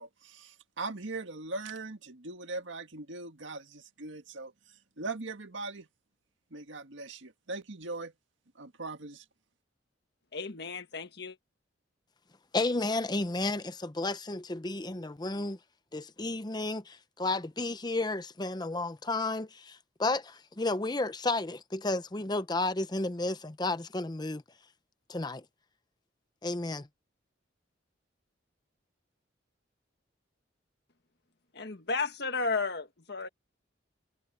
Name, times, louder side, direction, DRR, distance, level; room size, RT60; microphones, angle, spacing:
voice 1, 0.0-5.9 6.5-8.1 8.6-9.3, right 3 dB, 80° right, 1.8 m, -40 dB
voice 2, 10.3-11.4 31.5-33.3, left 4 dB, 60° left, 1.7 m, -33 dB
voice 3, 12.5-15.6 15.9-24.4 25.1-25.4 26.4-26.9, left 2 dB, 20° left, 0.7 m, -32 dB
head